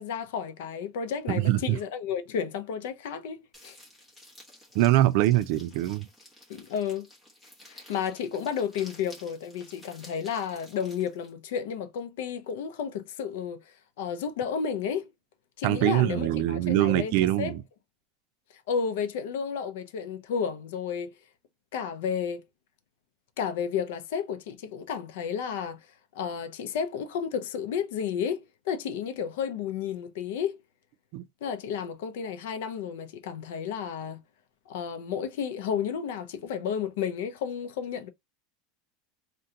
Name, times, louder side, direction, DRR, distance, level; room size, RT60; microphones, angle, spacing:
voice 1, 0.0-3.8 6.5-7.1 7.7-15.1 15.6-17.5 18.7-21.1 21.7-22.4 23.4-25.8 26.1-30.6 31.4-34.2 34.7-38.1, left 7 dB, 75° left, 0.5 m, -32 dB
voice 2, 1.3-1.8 4.7-6.1 15.6-17.6 31.1-31.2, right 14 dB, 50° right, 0.3 m, -23 dB
sound 1, 3.5-11.3, left 1 dB, 5° left, 0.9 m, -52 dB
2.8 x 2.2 x 3.6 m
supercardioid pair, 175°, 0 cm